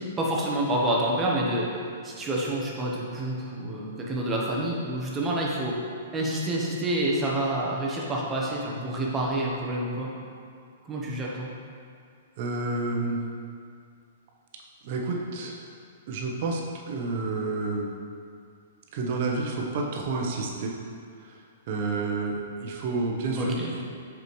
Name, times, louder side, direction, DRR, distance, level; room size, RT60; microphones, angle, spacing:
voice 1, 0.0-1.7 2.0-5.8 6.1-10.1 10.8-11.5 23.4-23.7, right 1 dB, 20° right, -4 dB, 1.0 m, -28 dB
voice 2, 12.4-13.2 14.8-15.6 16.1-17.9 18.9-20.7 21.2-21.4 21.7-23.8, right 3 dB, 50° right, 0 dB, 0.9 m, -29 dB
6.6 x 4.9 x 3.2 m, 2.2 s
hypercardioid pair, 125°, 0 cm